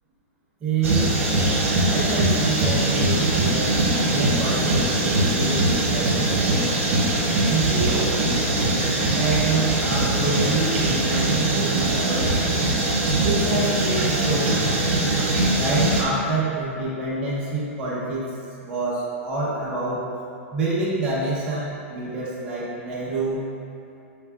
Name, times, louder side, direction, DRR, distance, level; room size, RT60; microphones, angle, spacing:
voice 1, 0.6-1.1 1.9-6.4 7.5-8.2 9.2-12.4 13.2-14.7 15.2-18.2 18.6-20.0 20.5-23.4, right 3 dB, 10° right, -8 dB, 0.7 m, -27 dB
sound 1, 0.8-16.0, right 2 dB, 60° right, 1.1 m, -22 dB
5.4 x 3.4 x 2.3 m, 2.7 s
hypercardioid pair, 175°, 8 cm